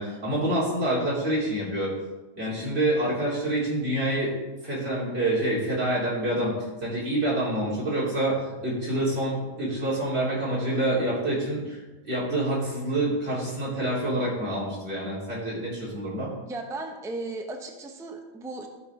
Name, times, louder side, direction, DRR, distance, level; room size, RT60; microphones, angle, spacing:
voice 1, 0.0-1.9 2.3-4.3 4.6-6.6 6.8-16.3, right 1 dB, 45° right, -7 dB, 3.8 m, -27 dB
voice 2, 16.4-18.7, right 2 dB, 5° right, 3 dB, 0.7 m, -36 dB
14.0 x 4.6 x 4.9 m, 1.1 s
omnidirectional pair, 1.5 m